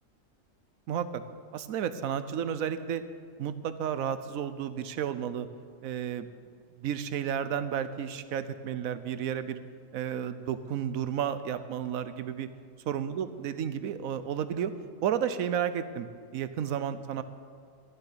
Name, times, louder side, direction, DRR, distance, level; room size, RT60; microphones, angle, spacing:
voice 1, 0.9-1.2 1.5-3.0 3.4-5.5 5.8-6.3 6.8-9.6 9.9-12.5 12.9-14.7 15.0-16.1 16.3-17.2, right 9 dB, 90° right, 12 dB, 1.2 m, -32 dB
13.5 x 6.7 x 9.7 m, 2.3 s
omnidirectional pair, 1.4 m